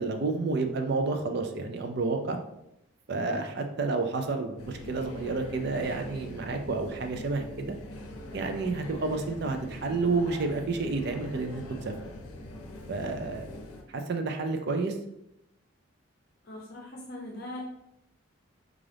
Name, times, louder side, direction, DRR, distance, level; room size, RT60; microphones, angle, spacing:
voice 1, 0.0-2.4 3.1-7.8 8.3-11.9 12.9-13.5 13.9-14.9, right 3 dB, 50° right, 5 dB, 0.4 m, -30 dB
sound 1, 4.6-13.8, left 1 dB, 90° left, 0.6 m, -43 dB
voice 2, 16.4-17.7, left 1 dB, 50° left, -2 dB, 0.6 m, -40 dB
3.8 x 2.4 x 3.3 m, 0.83 s
head